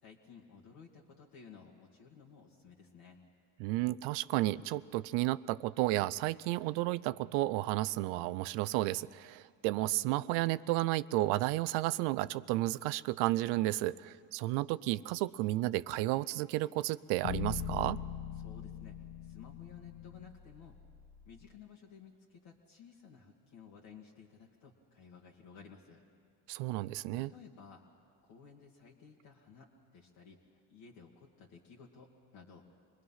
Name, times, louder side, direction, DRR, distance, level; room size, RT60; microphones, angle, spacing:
voice 1, 0.0-3.2 18.4-19.0 19.2-20.8 21.3-26.0 27.1-27.8 28.2-30.4 30.7-32.7, left 6 dB, 60° left, -3 dB, 2.0 m, -55 dB
voice 2, 3.6-18.0 26.5-27.3, right 17 dB, 80° right, 18 dB, 0.5 m, -32 dB
sound 1, 17.2-21.4, left 9 dB, 75° left, 1.1 m, -41 dB
26.5 x 20.0 x 5.7 m, 2.1 s
supercardioid pair, 100°, 39 cm